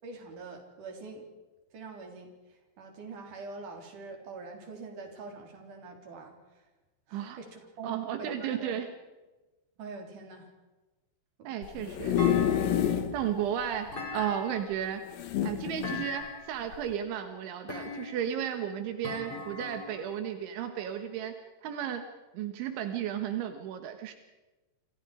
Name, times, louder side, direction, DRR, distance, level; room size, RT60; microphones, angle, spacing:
voice 1, 0.0-1.3 1.7-6.7 7.1-8.8 9.8-10.5 11.4-11.5 11.8-12.0, right 3 dB, 45° right, 3 dB, 5.0 m, -45 dB
voice 2, 7.8-8.9 11.5-12.2 13.1-15.0 15.4-21.3 21.6-22.0 22.3-24.1, right 9 dB, 80° right, 7 dB, 3.8 m, -34 dB
sound 1, 11.6-13.2 13.6-13.7 13.9-14.0 15.1-16.1 16.7-16.9, left 10 dB, 60° left, 2.7 m, -28 dB
Thump thud, 12.2-13.1 13.9-14.8 15.8-16.6 17.7-18.4 19.0-20.1, left 3 dB, 30° left, 5.2 m, -40 dB
29.0 x 27.0 x 5.0 m, 1.1 s
omnidirectional pair, 5.3 m